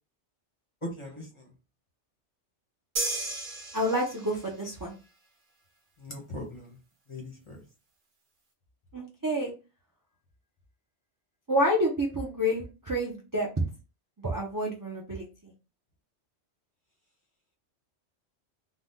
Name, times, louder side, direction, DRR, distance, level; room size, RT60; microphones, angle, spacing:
voice 1, 0.8-1.5 6.0-6.8 7.1-7.6, left 1 dB, 30° left, 0 dB, 0.8 m, -40 dB
sound 1, 3.0-4.5, right 2 dB, 50° right, 0.9 m, -33 dB
voice 2, 3.7-4.9 8.9-9.5 11.5-13.5 14.2-15.5, equal, 30° right, -3 dB, 0.4 m, -29 dB
2.7 x 2.1 x 3.5 m, 0.31 s
omnidirectional pair, 1.2 m